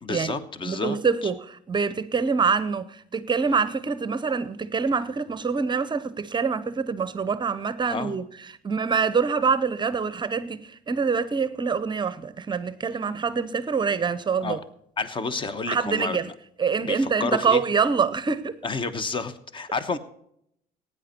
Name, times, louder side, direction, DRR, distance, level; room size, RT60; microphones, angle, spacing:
voice 1, 0.0-1.0 1.2-1.3 7.9-8.1 14.4-14.6 15.0-16.2 16.8-17.6 18.6-20.0, left 4 dB, 30° left, 1.1 m, -30 dB
voice 2, 0.7-14.6 15.7-16.3 16.6-18.6, right 5 dB, 25° right, 0.7 m, -25 dB
16.0 x 9.7 x 4.4 m
cardioid pair, 110°, 17 cm